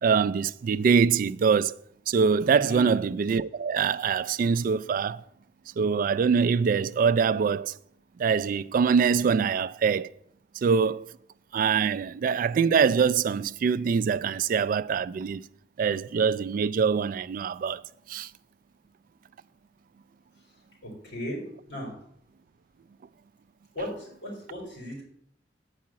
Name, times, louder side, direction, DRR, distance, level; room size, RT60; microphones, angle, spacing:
voice 1, 0.0-1.7 2.1-5.2 5.8-7.7 8.2-10.1 10.6-11.1 11.5-15.4 15.8-17.8 18.1-18.3, right 6 dB, 50° right, 0.3 m, -24 dB
voice 2, 20.8-21.9 23.7-25.0, equal, 80° left, 3.8 m, -36 dB
8.5 x 4.9 x 7.3 m
head